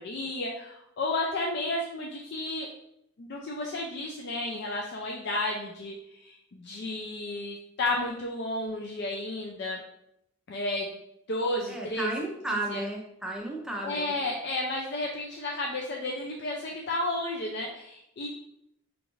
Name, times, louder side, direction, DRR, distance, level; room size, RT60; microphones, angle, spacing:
voice 1, 0.0-2.7 3.2-9.8 10.5-10.9 11.3-12.1 12.7-12.8 13.8-18.3, left 2 dB, 55° left, 0 dB, 0.4 m, -32 dB
voice 2, 11.7-14.1, right 2 dB, 5° right, -2 dB, 0.6 m, -33 dB
5.1 x 2.5 x 3.0 m, 0.78 s
head